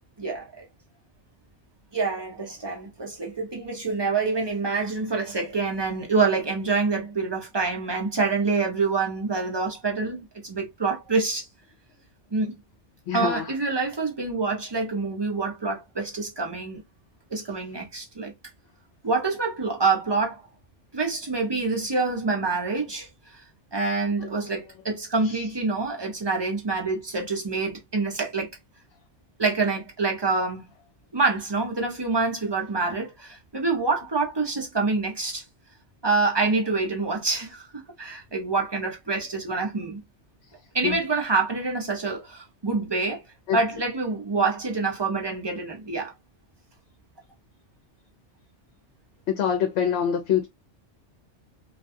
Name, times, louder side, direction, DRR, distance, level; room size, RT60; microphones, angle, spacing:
voice 1, 0.2-0.6 1.9-11.5 12.3-12.5 13.1-16.8 17.3-18.3 19.0-20.4 20.9-23.4 23.7-28.5 29.4-30.7 31.1-35.4 36.0-40.0 40.7-43.2 43.5-46.1, right 4 dB, 30° right, 0.6 m, -26 dB
voice 2, 13.1-13.5 24.2-24.3 25.2-25.4 40.8-41.0 43.5-43.6 49.4-50.5, left 8 dB, 70° left, 0.8 m, -25 dB
2.4 x 2.3 x 2.6 m
omnidirectional pair, 1.2 m